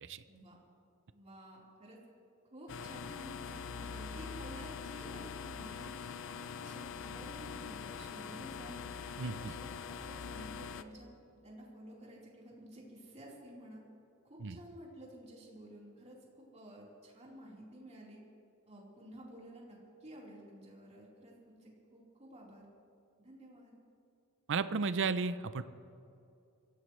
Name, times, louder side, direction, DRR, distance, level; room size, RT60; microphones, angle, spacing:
voice 1, 0.3-0.6 1.1-2.0 2.5-5.9 6.4-8.8 9.2-11.1 11.4-13.8 14.2-18.2 18.7-22.7 23.2-23.7, right 1 dB, 30° right, -5 dB, 4.1 m, -52 dB
sound 1, 2.7-10.8, left 6 dB, 60° left, 0.6 m, -43 dB
voice 2, 9.2-9.5 14.4-14.6 24.5-25.6, right 4 dB, 60° right, 12 dB, 0.6 m, -34 dB
24.5 x 16.0 x 3.2 m, 2.5 s
head